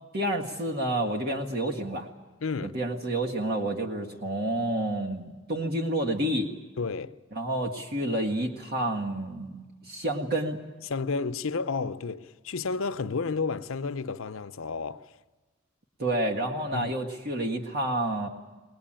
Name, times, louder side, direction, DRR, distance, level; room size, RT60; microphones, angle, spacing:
voice 1, 0.1-2.1 2.6-6.5 7.3-9.6 9.9-10.6 16.0-18.3, right 1 dB, 50° right, 1.8 m, -29 dB
voice 2, 2.4-2.8 6.8-7.2 10.8-15.1 16.7-16.9, left 4 dB, 70° left, 0.6 m, -31 dB
20.5 x 20.0 x 8.9 m
head